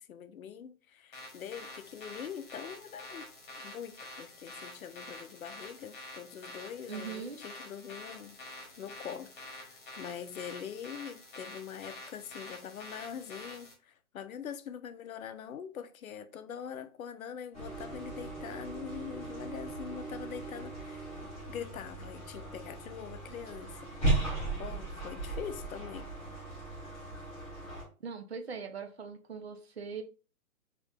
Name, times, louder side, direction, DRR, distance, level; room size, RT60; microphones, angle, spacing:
voice 1, 0.0-3.3 3.6-8.4 8.8-26.1, left 8 dB, 70° left, 0.6 m, -44 dB
sound 1, 1.1-13.7, left 1 dB, 35° left, 1.4 m, -48 dB
voice 2, 6.9-7.4 28.0-30.0, right 6 dB, 45° right, 0.5 m, -41 dB
sound 2, 17.5-27.8, right 2 dB, 5° left, 1.6 m, -37 dB
4.5 x 3.0 x 2.2 m
hypercardioid pair, 175°, 43 cm